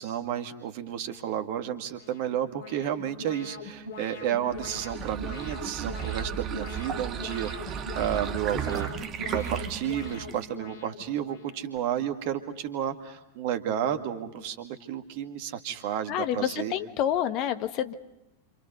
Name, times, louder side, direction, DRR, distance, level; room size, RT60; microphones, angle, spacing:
voice 1, 0.0-8.9 9.3-16.7, right 10 dB, 50° right, 8 dB, 2.1 m, -32 dB
Alarm, 1.9-11.8, left 3 dB, 60° left, 3.8 m, -42 dB
sound 1, 4.5-10.6, right 7 dB, 30° right, 1.5 m, -35 dB
voice 2, 16.1-17.9, left 10 dB, 40° left, 9 dB, 1.5 m, -28 dB
29.5 x 27.0 x 5.5 m, 0.90 s
figure-of-eight pair, 90°, 0 cm